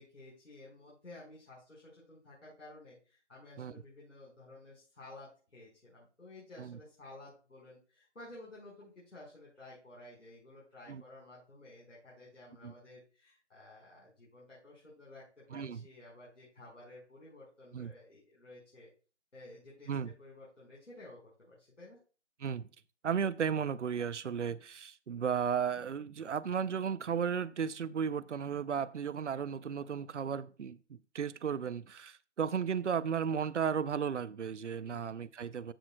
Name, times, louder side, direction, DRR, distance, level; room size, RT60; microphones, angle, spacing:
voice 1, 0.0-18.9 19.3-22.0 34.8-35.1, left 2 dB, 90° left, 4.7 m, -53 dB
voice 2, 15.5-15.8 17.7-17.9 19.9-20.1 22.4-22.6 23.0-35.7, right 7 dB, 75° right, 0.7 m, -34 dB
14.0 x 6.3 x 2.2 m
figure-of-eight pair, 170°, 36 cm